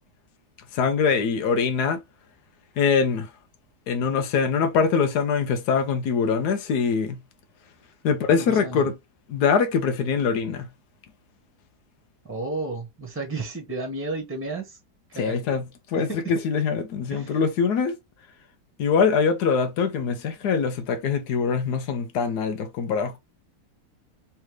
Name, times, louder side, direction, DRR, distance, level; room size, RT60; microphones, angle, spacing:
voice 1, 0.7-2.0 2.8-3.3 3.9-7.2 8.0-8.9 9.3-10.7 15.2-15.7 15.9-18.0 18.8-23.2, left 6 dB, 90° left, 1.3 m, -23 dB
voice 2, 8.3-8.8 12.2-14.8 15.1-15.6 16.1-16.2 17.1-17.4, right 3 dB, 10° right, 1.1 m, -32 dB
3.3 x 3.3 x 3.0 m
omnidirectional pair, 1.7 m